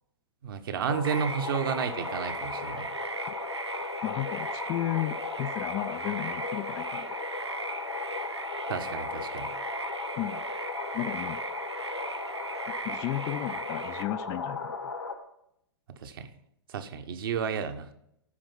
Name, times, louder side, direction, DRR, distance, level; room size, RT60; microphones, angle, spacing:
voice 1, 0.4-2.9 8.7-9.5 16.0-16.3 16.7-17.9, right 7 dB, 55° right, 7 dB, 1.1 m, -32 dB
sound 1, 0.9-15.1, left 4 dB, 85° left, 1.9 m, -36 dB
sound 2, 1.0-14.0, right 4 dB, 80° right, 0.9 m, -39 dB
voice 2, 4.0-7.1 10.2-10.4 10.9-11.4 12.7-14.8, left 14 dB, 25° left, 13 dB, 0.3 m, -34 dB
13.5 x 5.2 x 5.6 m, 0.75 s
figure-of-eight pair, 105°, 14 cm